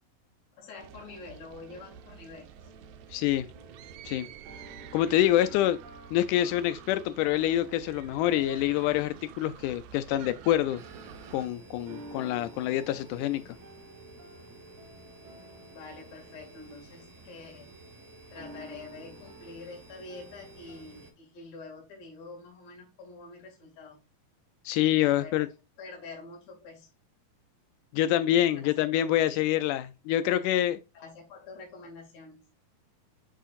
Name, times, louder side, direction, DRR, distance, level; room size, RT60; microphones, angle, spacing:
voice 1, 0.6-2.7 5.6-5.7 15.7-17.7 18.3-24.0 25.0-25.5 25.8-26.9 28.6-29.2 30.9-32.5, left 3 dB, 55° left, 3.4 m, -46 dB
sound 1, 0.8-11.5, right 9 dB, 80° right, 1.8 m, -49 dB
sound 2, 1.3-17.7 18.3-20.8, right 1 dB, 65° right, 2.5 m, -52 dB
voice 2, 3.1-3.5 4.1-4.3 4.9-5.8 6.1-10.8 11.3-13.4 24.7-25.5 27.9-30.8, left 13 dB, 80° left, 1.8 m, -26 dB
sound 3, 10.8-21.1, right 2 dB, 40° right, 1.0 m, -52 dB
8.4 x 5.6 x 2.5 m
omnidirectional pair, 4.0 m